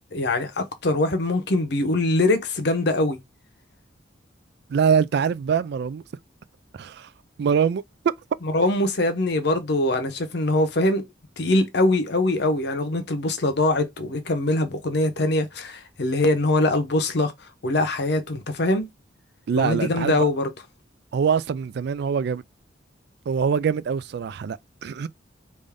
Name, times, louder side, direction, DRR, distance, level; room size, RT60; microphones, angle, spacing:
voice 1, 0.1-3.2 8.4-11.0 11.4-18.9 19.5-20.5, left 2 dB, 60° left, 0.8 m, -23 dB
voice 2, 4.7-6.0 6.8-7.1 7.4-7.8 19.5-20.2 21.1-22.4 23.3-25.1, right 6 dB, 60° right, 0.3 m, -23 dB
3.5 x 2.6 x 3.4 m
head